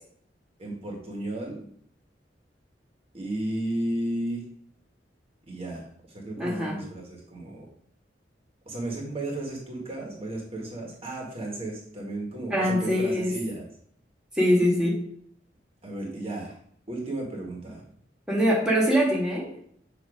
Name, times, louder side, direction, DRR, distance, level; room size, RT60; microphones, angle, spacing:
voice 1, 0.6-1.7 3.1-4.4 5.5-5.8 6.1-7.7 8.7-13.7 15.8-16.5 16.9-17.8, right 1 dB, 35° right, -1 dB, 1.4 m, -33 dB
voice 2, 6.4-6.8 12.5-13.3 14.3-15.0 18.3-19.5, equal, 5° right, -5 dB, 1.5 m, -23 dB
7.0 x 2.9 x 4.9 m, 0.63 s
head